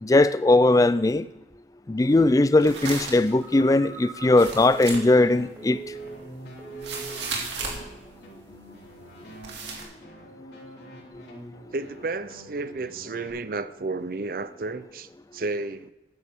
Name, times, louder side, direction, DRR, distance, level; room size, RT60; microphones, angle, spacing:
voice 1, 0.0-1.3 1.9-5.8, left 2 dB, 20° left, 0.3 m, -19 dB
sound 1, 2.1-7.9 8.3-8.6 8.8-9.2 9.4-9.8, right 4 dB, 85° right, 2.2 m, -35 dB
Telephone, 3.3-6.3 6.6-7.3 7.6-7.9, right 5 dB, 15° right, 2.2 m, -41 dB
sound 2, 5.2-13.3, right 1 dB, 70° left, 3.1 m, -46 dB
voice 2, 11.7-15.9, right 3 dB, 50° right, 0.5 m, -32 dB
12.5 x 9.8 x 3.6 m
head